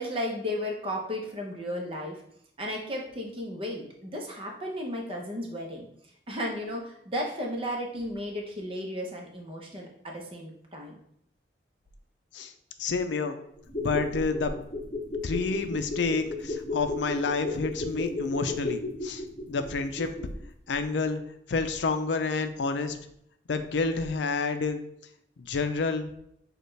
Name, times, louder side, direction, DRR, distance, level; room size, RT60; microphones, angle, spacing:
voice 1, 0.0-2.2 2.6-5.9 6.3-11.0, equal, 30° right, 0 dB, 0.8 m, -34 dB
voice 2, 12.8-13.4 13.8-14.6 15.2-20.1 20.7-21.2 21.5-23.0 23.5-24.8 25.4-26.1, left 4 dB, 85° left, 8 dB, 0.5 m, -29 dB
sound 1, 13.6-20.4 20.7-20.8, left 2 dB, 35° left, 1.0 m, -34 dB
6.5 x 2.4 x 3.2 m, 0.72 s
head